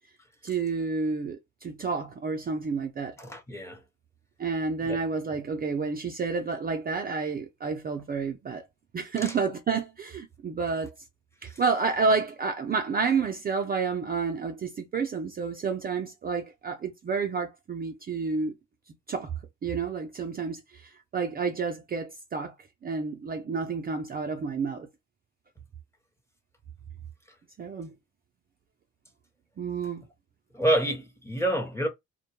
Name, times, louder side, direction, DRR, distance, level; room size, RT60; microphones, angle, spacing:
voice 1, 0.4-3.2 4.4-8.6 8.9-10.9 11.4-18.6 19.1-19.3 19.6-22.5 22.8-24.9 27.6-27.9 29.6-30.0, right 5 dB, 30° right, 0.4 m, -30 dB
voice 2, 3.2-3.8 4.8-5.0 9.2-9.4 11.4-11.6 30.5-31.9, right 1 dB, 10° left, 0.7 m, -28 dB
2.1 x 2.1 x 2.8 m
cardioid pair, 90°, 30 cm